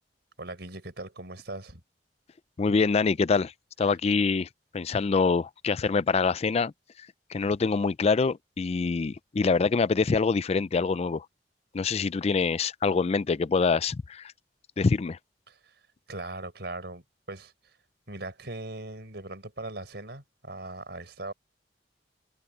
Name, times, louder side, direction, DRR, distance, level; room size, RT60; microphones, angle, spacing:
voice 1, 0.4-1.8 15.5-15.8 16.1-17.5 18.1-21.3, right 2 dB, 70° right, 5.4 m, -39 dB
voice 2, 2.6-3.5 3.8-4.5 4.7-6.7 7.0-11.3 11.7-14.3 14.8-15.2, left 4 dB, 35° left, 0.4 m, -25 dB
head